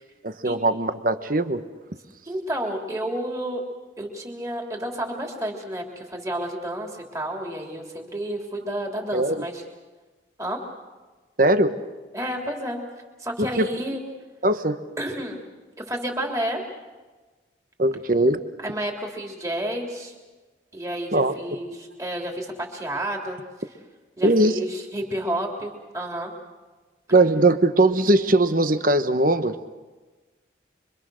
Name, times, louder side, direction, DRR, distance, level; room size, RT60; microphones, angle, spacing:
voice 1, 0.2-1.6 9.1-9.4 11.4-11.8 13.6-13.7 14.4-14.8 17.8-18.4 21.1-21.3 24.2-24.5 27.1-29.6, right 2 dB, 45° right, 10 dB, 1.2 m, -20 dB
voice 2, 2.3-3.6 4.0-9.6 10.4-10.6 12.1-12.8 13.2-14.0 15.0-15.4 15.8-16.6 18.6-20.1 20.7-23.4 24.2-26.3, right 1 dB, 15° right, 0 dB, 3.4 m, -30 dB
26.0 x 24.5 x 6.4 m, 1.3 s
head